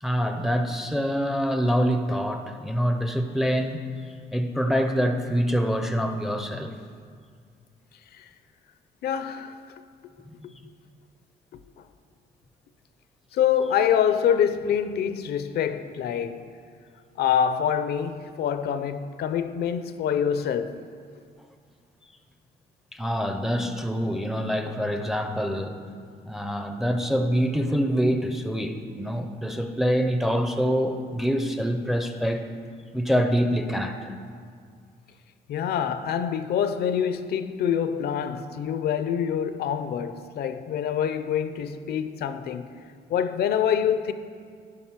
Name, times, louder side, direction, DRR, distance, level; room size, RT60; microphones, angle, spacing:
voice 1, 0.0-3.9 4.3-6.7 10.4-10.5 22.9-25.8 26.2-32.4 32.9-34.2, equal, ahead, 0.4 m, -25 dB
voice 2, 9.0-9.6 10.4-10.5 11.5-11.6 13.3-16.4 17.2-20.8 35.5-42.7 43.1-44.1, left 8 dB, 70° left, 0.5 m, -26 dB
11.5 x 5.0 x 5.7 m
cardioid pair, 165°, 17 cm